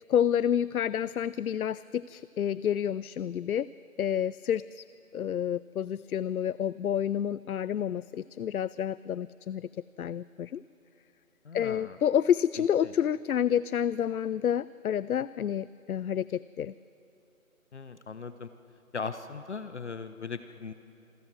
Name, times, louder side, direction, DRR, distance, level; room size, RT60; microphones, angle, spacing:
voice 1, 0.1-3.7 4.0-4.8 5.1-9.7 10.0-10.6 11.5-16.7, left 9 dB, 85° left, 18 dB, 0.5 m, -29 dB
voice 2, 11.4-12.0 12.6-12.9 17.7-18.5 18.9-20.7, left 5 dB, 55° left, 11 dB, 0.9 m, -39 dB
27.0 x 15.5 x 6.2 m, 2.7 s
figure-of-eight pair, 165°, 42 cm